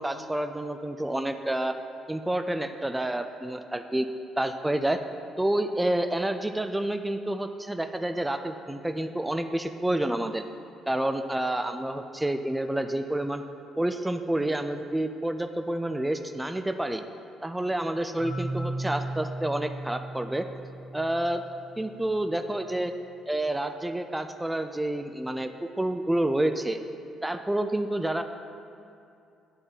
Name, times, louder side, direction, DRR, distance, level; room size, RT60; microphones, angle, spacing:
voice 1, 0.0-1.8 2.1-4.1 4.4-5.0 5.4-10.4 10.9-13.4 13.8-17.0 17.4-20.5 20.9-21.4 21.8-22.9 23.3-25.5 25.8-26.8 27.2-28.2, right 1 dB, 10° right, 7 dB, 0.3 m, -29 dB
Marimba xylophone, 18.2-22.0, right 1 dB, 50° right, 1.4 m, -36 dB
9.0 x 3.8 x 4.0 m, 2.5 s
hypercardioid pair, 50°, 0 cm